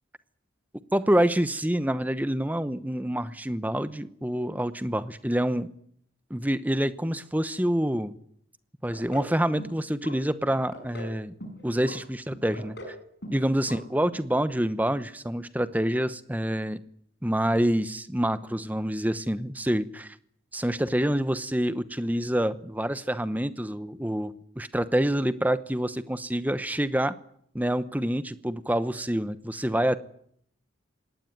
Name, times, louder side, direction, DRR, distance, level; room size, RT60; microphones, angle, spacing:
voice 1, 0.9-5.7 6.3-8.1 8.8-11.3 11.6-12.9 13.3-16.8 17.2-20.2 20.5-27.1 27.5-30.0, right 1 dB, 10° right, 13 dB, 0.9 m, -27 dB
sound 1, 8.9-9.3 9.6-10.2 10.5-11.1 11.4-12.0 12.3-13.0 13.2-13.4 13.7-13.8 14.1-14.2, equal, 55° left, 6.5 m, -40 dB
23.0 x 18.5 x 9.2 m, 0.66 s
head